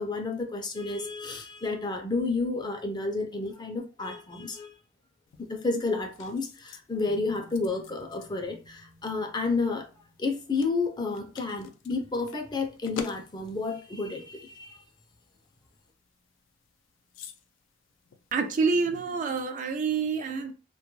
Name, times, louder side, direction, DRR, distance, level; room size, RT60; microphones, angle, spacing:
voice 1, 0.0-4.7 5.4-9.9 10.2-14.8, left 3 dB, 25° left, 0.4 m, -31 dB
sound 1, 5.3-19.0, left 5 dB, 80° left, 0.4 m, -49 dB
sound 2, 7.1-11.4, equal, 60° right, 0.9 m, -57 dB
voice 2, 18.3-20.5, right 4 dB, 40° right, 0.3 m, -27 dB
2.2 x 2.1 x 3.0 m
head